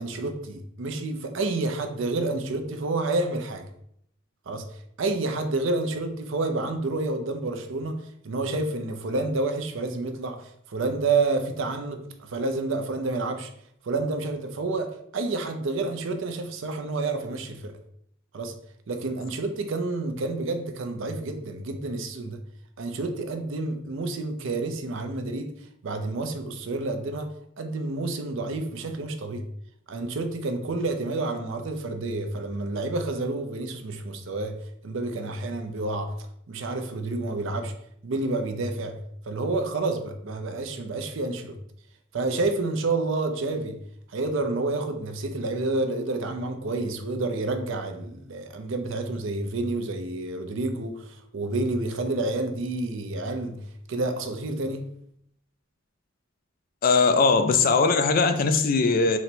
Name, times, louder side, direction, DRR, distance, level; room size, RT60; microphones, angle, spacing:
voice 1, 0.0-3.7 4.5-13.5 13.8-17.7 18.3-18.5 18.9-22.4 22.8-25.5 25.8-29.5 29.9-34.6 34.8-36.1 36.5-37.7 38.0-39.0 39.3-41.6 42.1-43.8 44.1-55.0, right 2 dB, 65° right, 0.5 m, -29 dB
voice 2, 56.8-59.2, left 4 dB, 45° left, 0.3 m, -20 dB
4.0 x 2.1 x 4.3 m
head